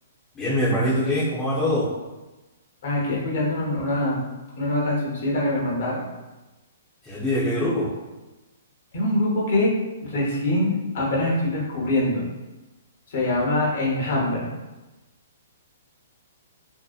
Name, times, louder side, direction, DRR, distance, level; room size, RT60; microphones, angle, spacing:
voice 1, 0.3-1.9 7.0-7.9, left 1 dB, 15° left, -10 dB, 0.6 m, -23 dB
voice 2, 2.8-4.2 4.6-6.1 8.9-9.7 10.0-12.3 13.1-14.5, left 1 dB, 55° left, -4 dB, 0.8 m, -24 dB
2.7 x 2.0 x 2.3 m, 1.1 s
hypercardioid pair, 155°, 0 cm